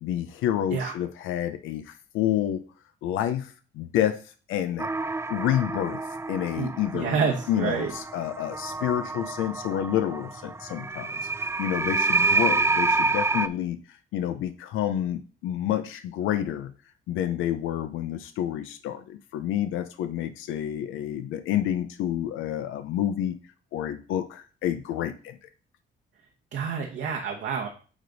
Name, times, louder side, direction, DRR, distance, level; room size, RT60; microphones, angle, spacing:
voice 1, 0.0-2.6 3.0-4.2 4.5-4.9 5.3-6.0 6.3-11.1 11.4-13.8 14.1-16.7 17.1-23.3 23.7-25.4, left 11 dB, 90° left, 10 dB, 0.6 m, -29 dB
sound 1, 4.8-13.5, right 3 dB, 15° right, 0.4 m, -28 dB
voice 2, 6.6-7.9 26.5-27.7, right 6 dB, 70° right, 1 dB, 1.2 m, -28 dB
8.8 x 3.4 x 3.9 m, 0.37 s
cardioid pair, 90°, 20 cm